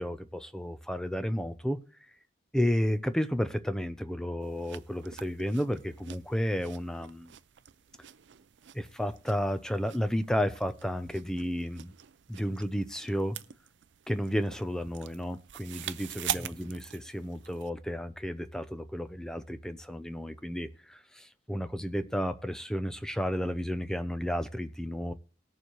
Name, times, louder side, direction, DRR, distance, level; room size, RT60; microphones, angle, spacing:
voice 1, 0.0-1.8 2.5-7.3 8.7-11.9 12.3-13.4 14.1-25.1, equal, 5° left, 0.5 m, -32 dB
sound 1, 4.4-17.7, right 10 dB, 70° right, 0.5 m, -44 dB
19.5 x 6.9 x 3.1 m
head